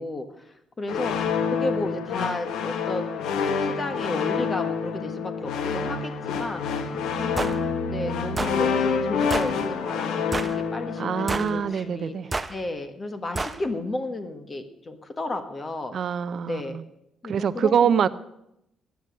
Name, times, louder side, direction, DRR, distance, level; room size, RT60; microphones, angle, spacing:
voice 1, 0.0-7.6 7.9-15.9 16.4-16.8 17.2-18.1, left 2 dB, 30° left, 7 dB, 1.4 m, -33 dB
sound 1, 0.9-11.8, left 6 dB, 85° left, 1.1 m, -28 dB
sound 2, 6.2-10.3 12.7-12.8, equal, 65° left, 4.4 m, -37 dB
sound 3, 7.4-7.6 8.4-8.6 9.3-9.5 10.3-10.6 11.3-11.6 12.3-12.5 13.3-13.6, right 3 dB, 25° right, 0.8 m, -29 dB
voice 2, 11.0-12.3 15.9-16.8 17.2-18.1, right 8 dB, 60° right, 13 dB, 0.5 m, -24 dB
15.0 x 9.5 x 6.4 m, 0.81 s
cardioid pair, 90°, 0 cm